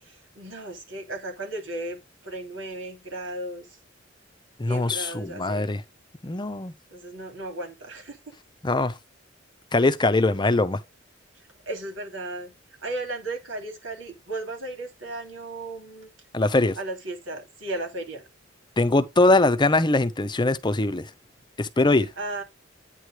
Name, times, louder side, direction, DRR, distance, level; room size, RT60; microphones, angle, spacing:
voice 1, 0.0-3.7 4.6-5.7 6.9-8.2 11.7-12.5 12.8-16.1 16.8-18.3 22.2-22.4, right 2 dB, 90° right, 2.9 m, -35 dB
voice 2, 4.6-5.8 6.2-6.7 8.6-8.9 9.7-10.8 16.3-16.8 18.8-21.0 21.6-22.1, left 2 dB, 25° left, 0.7 m, -22 dB
9.1 x 3.2 x 6.3 m
head